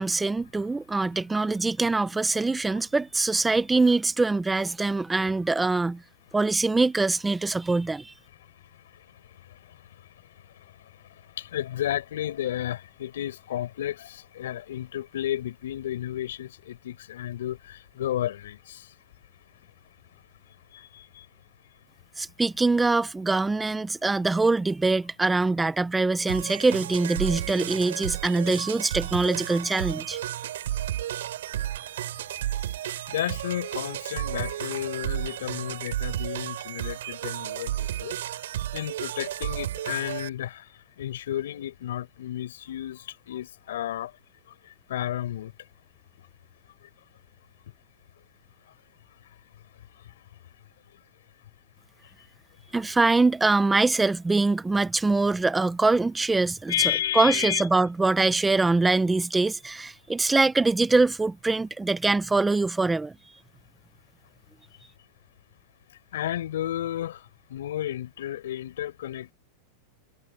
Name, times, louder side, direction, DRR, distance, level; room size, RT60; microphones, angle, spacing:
voice 1, 0.0-6.0 6.3-8.1 22.2-30.2 52.7-63.1, right 3 dB, 5° right, 0.8 m, -23 dB
voice 2, 11.4-18.9 20.7-21.2 33.1-38.2 38.7-40.7 41.0-44.1 44.9-45.5 56.7-57.7 66.1-69.3, left 12 dB, 90° left, 7.7 m, -32 dB
sound 1, 26.3-40.3, right 12 dB, 90° right, 5.4 m, -32 dB
supercardioid pair, 170°, 0 cm